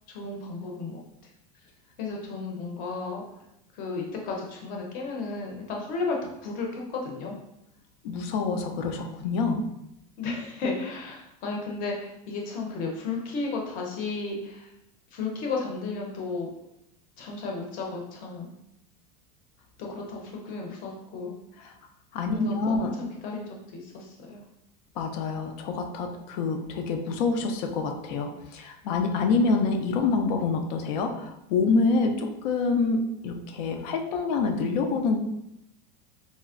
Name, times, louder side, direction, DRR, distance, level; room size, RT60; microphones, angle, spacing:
voice 1, 0.1-1.0 2.0-3.2 3.7-6.2 6.4-7.3 10.2-14.7 15.1-16.5 17.2-18.5 19.8-21.4 22.3-24.4, left 3 dB, 40° left, 0 dB, 0.7 m, -33 dB
voice 2, 8.0-9.6 19.8-19.9 21.6-21.7 22.1-22.9 25.0-35.2, left 4 dB, 75° left, 4 dB, 0.5 m, -26 dB
4.2 x 2.0 x 2.4 m, 0.83 s
supercardioid pair, 165°, 21 cm